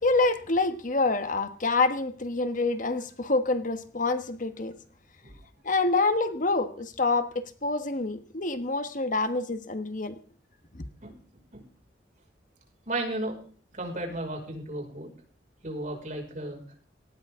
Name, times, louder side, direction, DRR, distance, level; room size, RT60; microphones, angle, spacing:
voice 1, 0.0-4.7 5.6-10.2, left 3 dB, 45° left, 1.3 m, -27 dB
voice 2, 12.9-13.4 13.7-15.1 15.6-16.6, right 1 dB, 45° right, 5.7 m, -34 dB
18.5 x 17.5 x 3.7 m
head